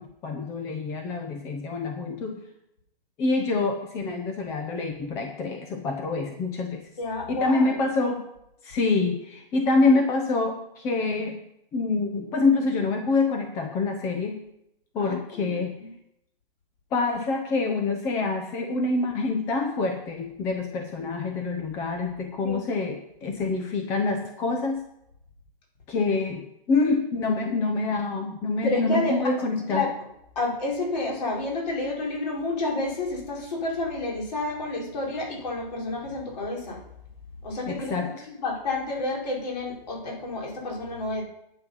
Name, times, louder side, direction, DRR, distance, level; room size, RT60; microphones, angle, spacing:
voice 1, 0.0-2.4 3.2-6.8 7.3-8.3 8.6-11.4 11.7-14.4 14.9-15.8 16.9-24.8 25.9-29.9 37.7-38.3, left 3 dB, 10° left, 4 dB, 0.6 m, -26 dB
voice 2, 7.0-7.7 15.0-15.9 22.4-22.6 28.6-29.2 29.7-29.9 30.3-36.8 37.4-41.2, left 2 dB, 45° left, -1 dB, 4.4 m, -30 dB
10.5 x 8.0 x 5.5 m, 0.80 s
hypercardioid pair, 155°, 29 cm